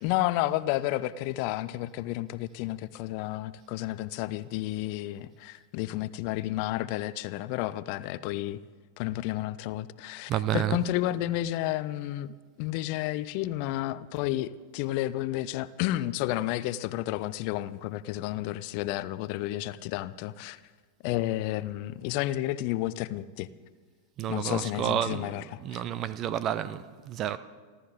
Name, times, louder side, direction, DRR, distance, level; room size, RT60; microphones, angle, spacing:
voice 1, 0.0-8.6 9.0-12.3 12.6-20.6 21.0-23.5 24.3-25.8, left 15 dB, 45° left, 0.5 m, -31 dB
voice 2, 10.3-10.9 24.2-25.3 25.6-27.4, right 11 dB, 35° right, 0.7 m, -30 dB
29.0 x 12.5 x 3.7 m
figure-of-eight pair, 90°, 0 cm